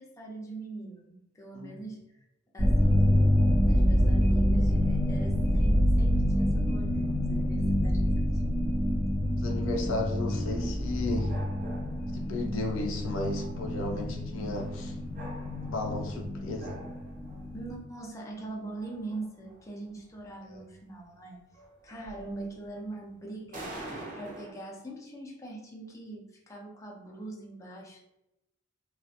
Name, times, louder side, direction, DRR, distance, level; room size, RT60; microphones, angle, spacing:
voice 1, 0.0-2.0 2.5-8.4 9.2-9.5 17.5-21.4 21.8-23.7 24.1-28.0, right 2 dB, 15° left, -2 dB, 0.4 m, -42 dB
sound 1, 2.6-17.8, equal, 70° right, 0.9 m, -27 dB
voice 2, 9.4-11.3 12.1-14.9 15.6-16.8 20.5-20.6, left 2 dB, 70° left, 2 dB, 0.4 m, -34 dB
sound 2, 10.5-12.3 12.7-12.9 13.3-13.9 14.5-16.2 16.6-17.6 18.1-18.2 18.4-19.7 20.0-20.2 20.5-20.6 21.0-21.1 21.5-22.7 23.5-24.5, right 1 dB, 40° right, 0.5 m, -46 dB
2.3 x 2.0 x 2.7 m, 0.89 s
head